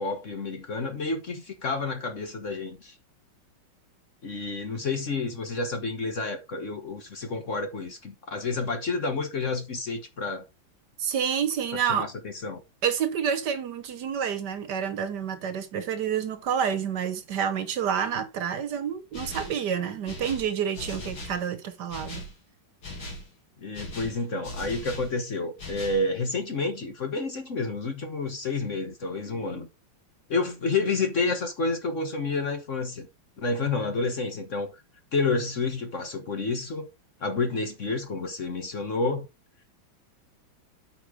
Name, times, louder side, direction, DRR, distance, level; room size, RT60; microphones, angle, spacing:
voice 1, 0.0-2.9 4.2-10.5 11.7-12.6 23.6-29.7 30.3-33.1 33.4-34.7 35.1-36.9 37.2-39.3, left 3 dB, 45° left, 1.3 m, -29 dB
voice 2, 11.0-12.1 12.8-22.3, right 8 dB, 65° right, 1.4 m, -28 dB
sound 1, 19.1-19.6 20.1-21.4 21.9-22.3 22.8-23.3 23.7-25.1 25.6-26.1, left 1 dB, 70° left, 3.3 m, -39 dB
8.8 x 5.2 x 4.8 m
omnidirectional pair, 2.1 m